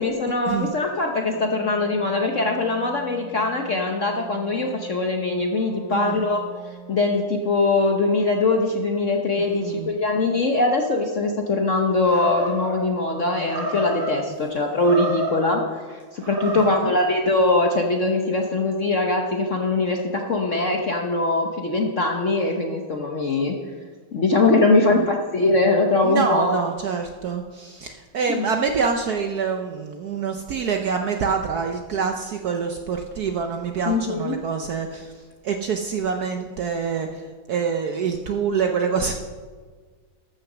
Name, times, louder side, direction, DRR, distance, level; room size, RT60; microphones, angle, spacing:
voice 1, 0.0-6.4 6.9-15.6 15.9-23.6 24.1-26.6 28.3-28.5 33.9-34.3, left 2 dB, 55° left, 2 dB, 0.9 m, -22 dB
Wind instrument woodwind instrument, 1.2-7.2, right 4 dB, 15° left, 2.6 m, -43 dB
voice 2, 5.9-6.2 9.4-10.0 16.4-16.9 24.7-25.1 26.0-35.1 35.4-39.1, right 6 dB, 65° right, 5 dB, 1.0 m, -26 dB
Animal, 12.1-12.8 13.5-14.1 14.7-15.5 16.2-16.9, right 1 dB, 80° right, 4.6 m, -29 dB
13.5 x 6.6 x 6.1 m, 1.5 s
omnidirectional pair, 2.3 m